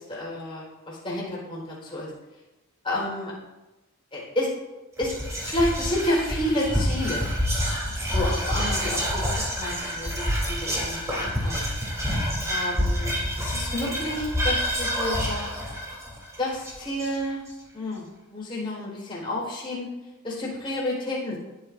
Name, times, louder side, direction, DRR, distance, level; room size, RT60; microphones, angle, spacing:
voice 1, 0.1-2.1 2.8-3.3 4.1-4.5 5.0-7.3 8.1-11.7 12.5-13.1 13.4-15.5 16.4-17.4 17.7-19.9 20.2-21.4, left 1 dB, 25° left, -5 dB, 4.5 m, -30 dB
Whispering, 5.0-17.5, equal, 15° right, 3.5 m, -27 dB
20.0 x 10.5 x 2.7 m, 1.0 s
head